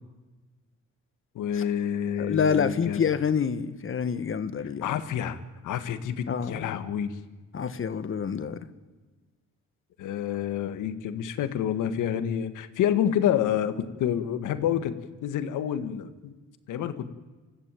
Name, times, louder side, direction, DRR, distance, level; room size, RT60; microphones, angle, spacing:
voice 1, 1.3-3.1 4.8-7.2 10.0-15.0 15.2-16.3 16.7-17.1, left 9 dB, 85° left, 1.8 m, -28 dB
voice 2, 2.2-4.8 6.3-6.7 7.5-8.6, left 6 dB, 45° left, 1.6 m, -27 dB
26.0 x 15.0 x 9.1 m
cardioid pair, 90°, 30 cm